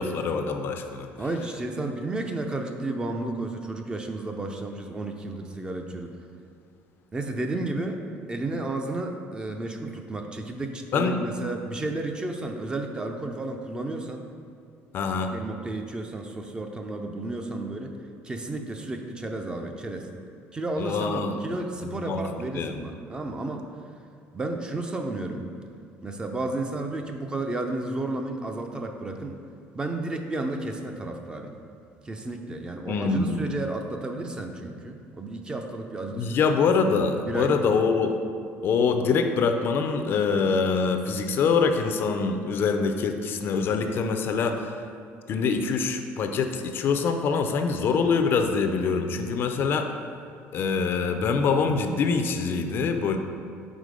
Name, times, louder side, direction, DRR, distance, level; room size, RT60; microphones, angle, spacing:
voice 1, 0.0-1.1 10.9-11.2 14.9-15.3 20.8-21.4 21.8-22.2 22.5-22.8 32.9-33.4 36.1-38.2 38.6-44.7 45.3-49.9 50.5-53.2, left 5 dB, 50° left, 6 dB, 0.4 m, -24 dB
voice 2, 1.2-6.1 7.1-8.0 8.3-14.2 15.3-17.9 18.2-20.1 20.5-23.7 24.3-25.5 26.0-29.4 29.7-31.5 32.0-36.4 37.2-37.8, right 2 dB, 15° right, 4 dB, 0.4 m, -32 dB
4.9 x 4.0 x 5.1 m, 2.3 s
cardioid pair, 130°, 5 cm